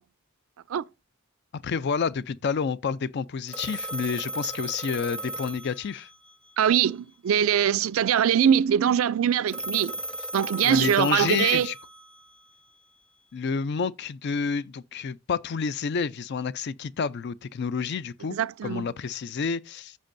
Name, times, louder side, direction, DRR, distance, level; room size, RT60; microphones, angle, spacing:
voice 1, 1.5-6.1 10.6-11.7 13.3-18.4 18.6-20.0, left 5 dB, 55° left, 0.4 m, -29 dB
Telephone, 3.5-6.3 9.5-12.3, right 1 dB, 5° left, 0.7 m, -35 dB
voice 2, 6.6-9.9 10.3-11.7 18.3-18.9, right 9 dB, 80° right, 0.4 m, -22 dB
14.5 x 5.2 x 2.6 m
head